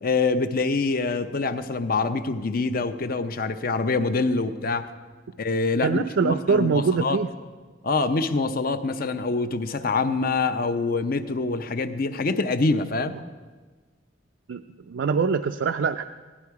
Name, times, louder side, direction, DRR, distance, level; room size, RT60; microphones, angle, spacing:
voice 1, 0.0-4.9 5.4-7.2 7.8-13.2, left 3 dB, 55° left, 10 dB, 0.6 m, -25 dB
voice 2, 5.8-7.3 14.5-14.6 14.9-16.0, right 5 dB, 80° right, 7 dB, 0.4 m, -23 dB
16.5 x 11.5 x 4.7 m, 1.4 s
head